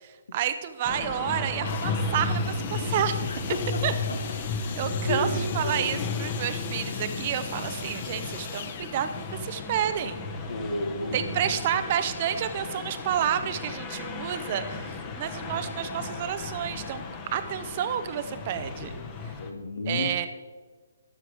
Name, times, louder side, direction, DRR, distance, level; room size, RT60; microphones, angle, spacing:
voice 1, 0.0-3.2 3.8-3.9 4.8-10.2 11.1-17.0 17.3-18.9 19.9-20.3, right 10 dB, 40° right, 10 dB, 0.6 m, -30 dB
sound 1, 0.8-19.5, left 3 dB, 25° left, 1.1 m, -34 dB
sound 2, 1.6-11.3 12.1-12.2, left 7 dB, 45° left, 0.8 m, -41 dB
voice 2, 3.2-4.2 4.5-6.0 10.5-11.8 19.4-20.3, left 2 dB, 80° left, 4 dB, 1.3 m, -33 dB
12.5 x 4.8 x 4.8 m, 1.4 s
hypercardioid pair, 145°, 0 cm